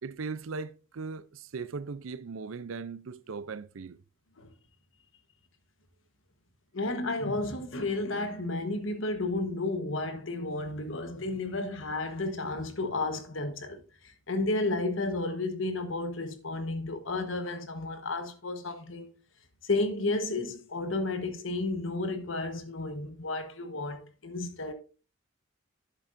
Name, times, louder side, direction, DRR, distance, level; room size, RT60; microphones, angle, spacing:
voice 1, 0.0-4.0, right 4 dB, 90° right, 0.5 m, -38 dB
voice 2, 6.7-19.1 19.6-24.7, left 2 dB, 75° left, 1.2 m, -32 dB
11.5 x 7.6 x 2.6 m
head